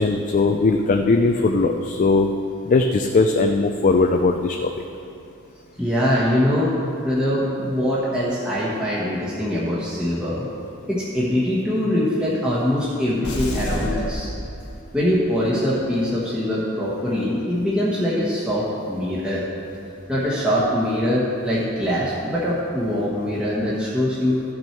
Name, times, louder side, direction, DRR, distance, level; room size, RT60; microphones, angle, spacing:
voice 1, 0.0-2.3 2.7-4.7, left 3 dB, 40° left, 4 dB, 0.4 m, -19 dB
voice 2, 5.8-6.7 7.0-10.4 10.9-14.3 14.9-19.4 20.1-24.4, equal, 5° right, -8 dB, 1.2 m, -23 dB
sound 1, 13.2-15.1, equal, 85° left, 1.4 m, -29 dB
13.0 x 6.2 x 4.4 m, 2.6 s
head